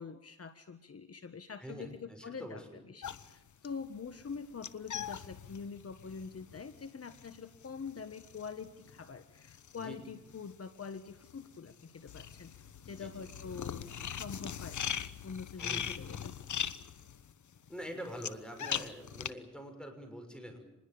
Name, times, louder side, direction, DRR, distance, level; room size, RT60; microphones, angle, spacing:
voice 1, 0.0-12.5 12.8-14.9 15.2-16.3, left 5 dB, 50° left, 10 dB, 1.4 m, -45 dB
voice 2, 1.6-2.8 9.8-10.0 12.9-13.3 15.6-15.9 17.7-20.6, equal, 5° left, 5 dB, 6.6 m, -45 dB
sound 1, 3.0-10.5 10.8-19.3, left 8 dB, 70° left, 1.1 m, -41 dB
26.5 x 21.0 x 7.1 m, 0.94 s
cardioid pair, 85°, 31 cm